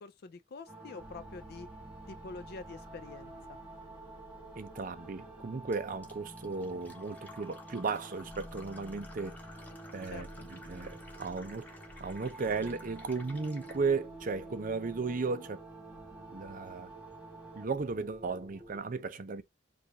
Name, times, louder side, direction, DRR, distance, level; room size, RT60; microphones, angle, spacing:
voice 1, 0.0-1.7 2.1-3.6 10.1-10.5, left 4 dB, 60° left, 0.4 m, -46 dB
sound 1, 0.7-17.7, right 2 dB, 10° right, 1.3 m, -49 dB
sound 2, 1.0-18.8, equal, 30° right, 2.6 m, -56 dB
voice 2, 4.6-9.4 9.9-11.7 12.0-15.6 16.3-16.9 17.5-19.4, right 4 dB, 50° right, 0.5 m, -35 dB
Fill (with liquid), 5.7-13.8, left 2 dB, 10° left, 1.1 m, -54 dB
4.9 x 2.4 x 3.9 m
head